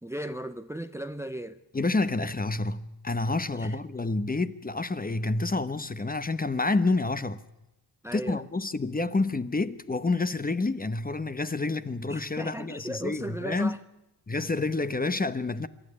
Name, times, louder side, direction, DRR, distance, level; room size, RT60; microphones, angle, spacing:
voice 1, 0.0-1.6 3.5-3.8 8.0-8.4 12.1-13.8, right 1 dB, 5° right, 0.7 m, -36 dB
voice 2, 1.7-7.4 8.1-13.8 14.3-15.7, left 3 dB, 20° left, 0.9 m, -28 dB
26.0 x 12.5 x 9.8 m
wide cardioid pair, 100°, 42 cm